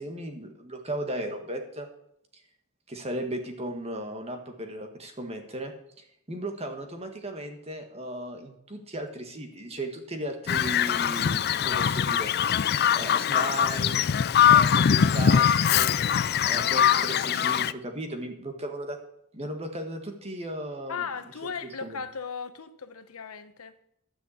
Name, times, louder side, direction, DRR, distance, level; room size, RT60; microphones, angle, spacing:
voice 1, 0.0-1.9 2.9-14.1 14.5-15.9 16.4-19.0 19.3-21.0 21.8-22.0, right 1 dB, 30° right, 5 dB, 1.7 m, -36 dB
Bird vocalization bird call bird song, 10.5-17.7, left 8 dB, 45° left, 0.4 m, -22 dB
voice 2, 20.9-23.8, left 6 dB, 85° left, 10 dB, 1.0 m, -36 dB
12.5 x 5.9 x 8.5 m, 0.75 s
head